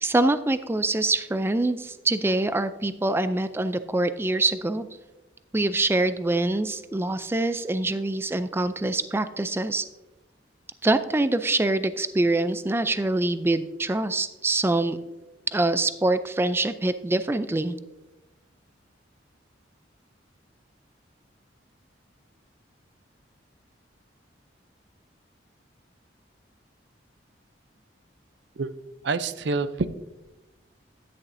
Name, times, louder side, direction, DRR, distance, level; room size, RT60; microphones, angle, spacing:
voice 1, 0.0-4.9 5.5-9.8 10.8-15.0 15.5-17.8, right 2 dB, 15° right, 12 dB, 0.3 m, -25 dB
voice 2, 29.0-29.9, right 4 dB, 65° right, 13 dB, 0.5 m, -26 dB
11.0 x 10.0 x 2.6 m, 1.1 s
head